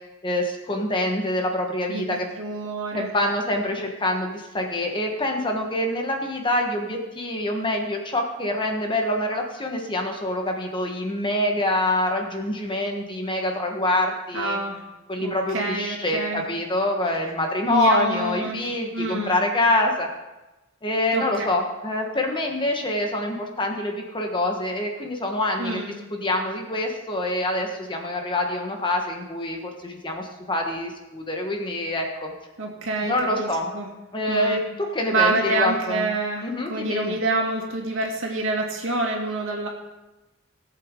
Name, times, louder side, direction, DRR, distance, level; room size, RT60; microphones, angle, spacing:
voice 1, 0.2-2.3 2.9-14.6 15.1-20.1 20.8-25.8 26.1-32.3 33.0-33.7 34.1-36.0 36.4-37.1, left 1 dB, 25° left, 2 dB, 1.4 m, -25 dB
voice 2, 1.9-3.1 14.3-14.8 15.2-16.4 17.7-18.6 18.9-19.4 21.1-21.5 25.6-25.9 32.6-33.9 34.3-34.6 35.1-39.7, right 2 dB, 65° right, 0 dB, 2.4 m, -27 dB
18.0 x 8.1 x 3.8 m, 1.0 s
head